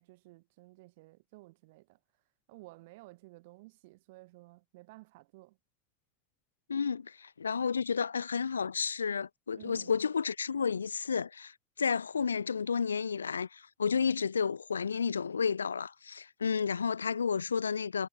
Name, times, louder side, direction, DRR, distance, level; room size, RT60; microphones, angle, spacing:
voice 1, 0.0-2.0 2.5-5.6 9.5-10.0, right 22 dB, 65° right, 4.6 m, -54 dB
voice 2, 6.7-18.1, left 6 dB, 80° left, 0.4 m, -31 dB
figure-of-eight pair, 65°, 0 cm